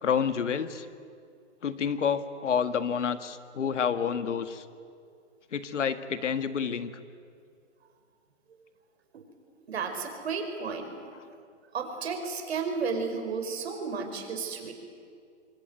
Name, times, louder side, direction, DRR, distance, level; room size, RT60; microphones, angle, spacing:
voice 1, 0.0-0.9 1.6-4.7 5.5-6.9, left 7 dB, 80° left, 11 dB, 1.8 m, -29 dB
voice 2, 9.7-10.9 11.3-11.4 11.7-14.7, right 5 dB, 60° right, 5 dB, 5.1 m, -33 dB
26.0 x 21.5 x 9.5 m, 2.3 s
hypercardioid pair, 165°, 36 cm